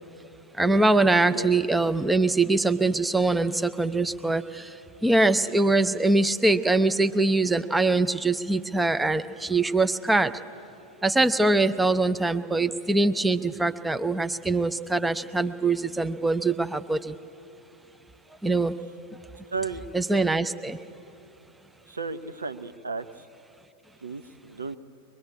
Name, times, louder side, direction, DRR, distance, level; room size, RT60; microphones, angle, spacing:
voice 1, 0.6-4.7 5.0-10.3 11.0-17.1 18.4-18.8 19.9-20.8, right 2 dB, 5° right, 10 dB, 0.6 m, -23 dB
voice 2, 19.5-19.9 21.9-23.0 24.0-24.8, right 4 dB, 75° right, 9 dB, 0.8 m, -33 dB
23.0 x 21.5 x 8.5 m, 2.9 s
figure-of-eight pair, 90°, 0 cm